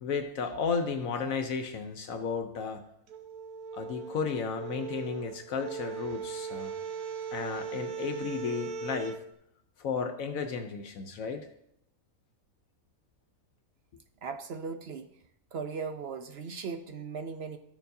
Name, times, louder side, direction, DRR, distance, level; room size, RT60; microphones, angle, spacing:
voice 1, 0.0-2.8 3.7-6.7 7.3-9.2 9.8-11.5, left 5 dB, 70° left, 7 dB, 1.1 m, -33 dB
sound 1, 3.1-9.2, right 6 dB, 80° right, 1.3 m, -39 dB
voice 2, 14.2-15.1 15.5-17.6, right 5 dB, 55° right, 7 dB, 0.7 m, -38 dB
13.5 x 6.8 x 2.7 m, 0.76 s
omnidirectional pair, 1.6 m